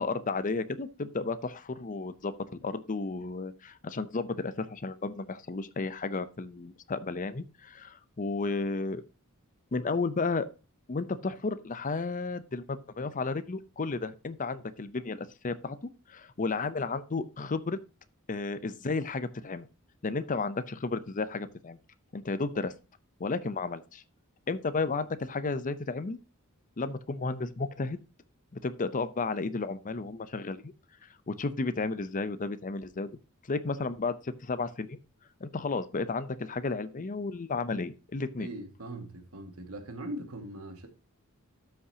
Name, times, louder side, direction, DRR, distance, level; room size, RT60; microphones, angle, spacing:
voice 1, 0.0-9.0 9.7-10.5 10.9-17.8 18.3-19.7 20.0-21.8 22.1-22.7 23.2-24.0 24.5-26.2 26.8-28.0 28.5-30.7 31.3-33.1 33.5-35.0 35.4-38.5, left 3 dB, 40° left, 0.6 m, -33 dB
voice 2, 38.4-40.9, right 1 dB, 85° right, 1.9 m, -40 dB
13.0 x 5.7 x 2.8 m
head